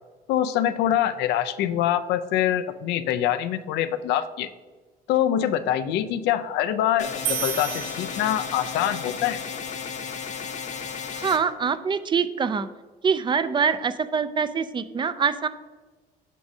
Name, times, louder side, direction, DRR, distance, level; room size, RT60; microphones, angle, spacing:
voice 1, 0.3-4.5 5.1-9.4, left 11 dB, 85° left, 11 dB, 0.4 m, -24 dB
sound 1, 7.0-11.4, left 6 dB, 45° left, 0.7 m, -34 dB
sound 2, 7.3-8.9, right 10 dB, 85° right, 0.5 m, -32 dB
voice 2, 11.1-12.7 13.0-15.5, right 6 dB, 30° right, 13 dB, 0.3 m, -24 dB
8.2 x 6.1 x 2.7 m, 1.3 s
cardioid pair, 110°, 17 cm